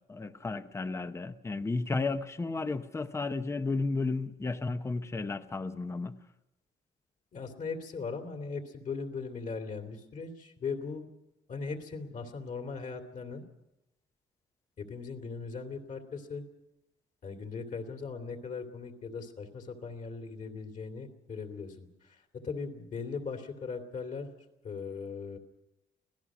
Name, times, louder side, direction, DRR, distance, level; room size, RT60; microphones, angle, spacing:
voice 1, 0.1-6.1, left 3 dB, 15° left, 10 dB, 0.8 m, -33 dB
voice 2, 7.3-11.1 11.5-13.4 14.8-16.4 17.2-24.3 24.6-25.4, left 4 dB, 40° left, 5 dB, 2.7 m, -39 dB
25.5 x 17.5 x 6.2 m, 0.89 s
cardioid pair, 170°, 19 cm